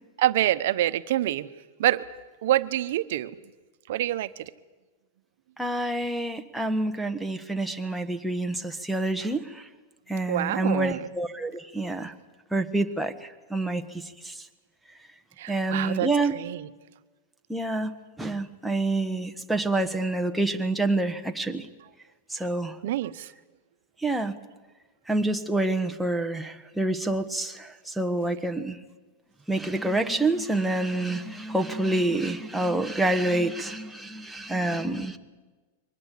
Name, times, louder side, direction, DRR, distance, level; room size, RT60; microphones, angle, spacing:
voice 1, 0.2-1.5 1.8-2.1 2.4-3.3 3.9-4.5 10.3-11.1 15.4-16.6 22.8-23.3, right 13 dB, 65° right, 13 dB, 1.1 m, -26 dB
voice 2, 5.6-9.7 10.1-12.1 12.5-14.5 15.5-16.4 17.5-21.7 22.3-22.8 24.0-24.4 25.1-28.8 29.5-35.2, right 2 dB, ahead, 5 dB, 1.3 m, -27 dB
23.5 x 19.5 x 8.5 m, 1.3 s
supercardioid pair, 150°, 0 cm